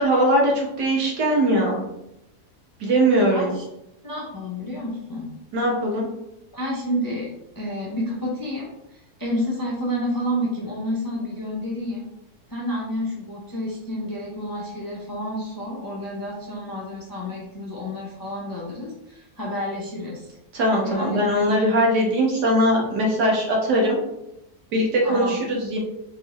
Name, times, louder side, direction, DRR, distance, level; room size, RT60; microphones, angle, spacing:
voice 1, 0.0-1.9 2.8-3.5 5.5-6.1 20.5-24.0 24.7-25.8, right 1 dB, 85° right, -1 dB, 1.7 m, -20 dB
voice 2, 3.3-3.6 4.0-5.3 6.5-7.3 7.6-12.1 12.5-20.3 20.8-21.3 21.8-21.9 25.0-25.4, equal, 25° left, -4 dB, 0.4 m, -30 dB
4.5 x 3.1 x 3.0 m, 0.86 s
omnidirectional pair, 1.7 m